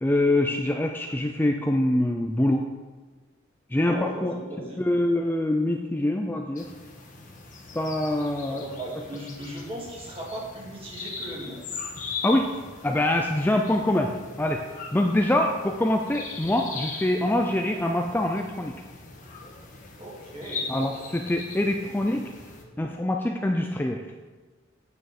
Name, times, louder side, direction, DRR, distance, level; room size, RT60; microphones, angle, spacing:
voice 1, 0.0-2.7 3.7-4.3 4.8-6.7 7.7-8.6 12.2-12.5 12.8-14.1 14.4-14.6 14.9-18.7 20.7-22.3 22.8-24.0, left 1 dB, 10° left, 2 dB, 0.4 m, -24 dB
voice 2, 3.9-4.8 8.5-11.6 20.0-20.7, right 1 dB, 30° right, -3 dB, 2.0 m, -37 dB
sound 1, 6.6-22.6, left 4 dB, 40° left, 1.3 m, -40 dB
9.1 x 7.1 x 4.2 m, 1.3 s
head